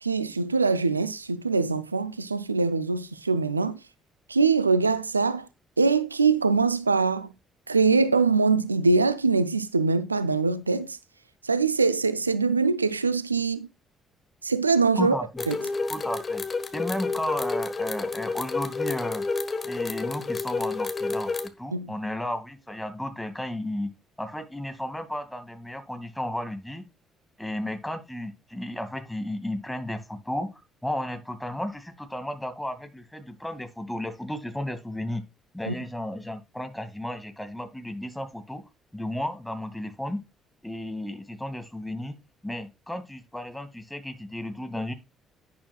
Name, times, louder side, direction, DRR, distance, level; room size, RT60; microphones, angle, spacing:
voice 1, 0.0-3.8 4.3-5.5 5.8-7.3 7.7-11.0 11.4-13.7 14.4-15.2 15.5-15.6 21.7-21.9 35.7-35.8, right 4 dB, 90° right, 0.4 m, -23 dB
voice 2, 15.0-15.5 15.9-16.4 16.7-19.3 19.6-23.9 24.2-26.8 27.4-35.2 35.5-38.6 38.9-40.2 40.6-42.2 42.4-44.9, left 1 dB, 5° left, 2.3 m, -33 dB
sound 1, 15.4-21.5, left 4 dB, 35° left, 1.5 m, -30 dB
11.0 x 10.0 x 2.4 m
figure-of-eight pair, 45°, 0 cm